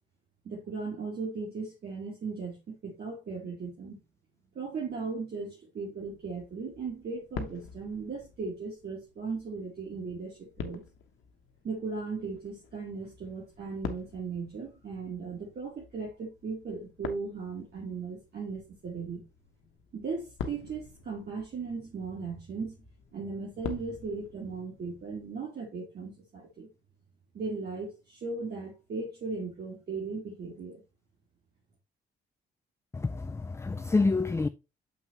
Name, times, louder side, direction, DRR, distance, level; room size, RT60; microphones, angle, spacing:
voice 1, 0.4-4.0 4.6-10.8 11.6-19.2 19.9-22.8 23.1-26.7 27.3-30.8, right 4 dB, 55° right, 2.2 m, -37 dB
sound 1, 6.0-25.3, left 7 dB, 80° left, 1.2 m, -46 dB
voice 2, 32.9-34.5, left 3 dB, 15° left, 0.4 m, -27 dB
7.4 x 5.7 x 3.0 m
cardioid pair, 90°, 20 cm